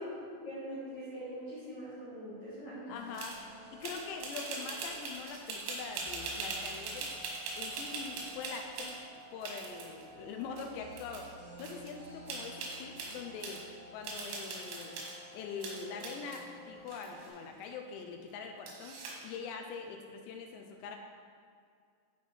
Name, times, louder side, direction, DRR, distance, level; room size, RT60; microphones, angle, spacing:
voice 1, 0.0-3.0, equal, 55° left, -10 dB, 2.2 m, -42 dB
voice 2, 2.9-3.4 3.7-7.1 7.6-9.0 9.3-11.3 11.6-13.6 13.9-15.0 15.3-19.0 19.2-21.0, left 5 dB, 80° left, 4 dB, 2.6 m, -43 dB
sound 1, 2.9-5.2 6.0-17.3, equal, 55° right, 1.8 m, -53 dB
sound 2, 3.1-3.4 3.8-8.9 9.4-10.0 10.6-10.7 10.9-11.3 11.6-11.9 12.3-13.6 14.0-15.2 15.6-16.4 16.9-17.6 18.7-19.3, right 3 dB, 90° right, 3.9 m, -41 dB
12.0 x 4.5 x 4.3 m, 2.2 s
omnidirectional pair, 5.5 m